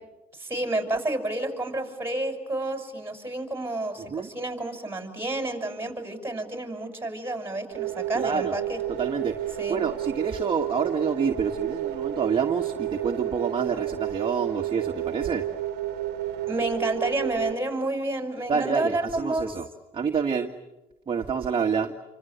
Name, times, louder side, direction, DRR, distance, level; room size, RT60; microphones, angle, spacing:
voice 1, 0.3-8.8 9.6-9.8 16.5-19.5, right 2 dB, 15° right, 6 dB, 6.5 m, -30 dB
sound 1, 7.7-17.5, right 12 dB, 80° right, 1.2 m, -31 dB
voice 2, 8.1-8.5 9.0-15.5 18.5-19.7 19.9-20.5 21.1-21.9, right 6 dB, 30° right, 4 dB, 1.8 m, -27 dB
28.5 x 25.5 x 8.2 m, 1.0 s
cardioid pair, 110°, 17 cm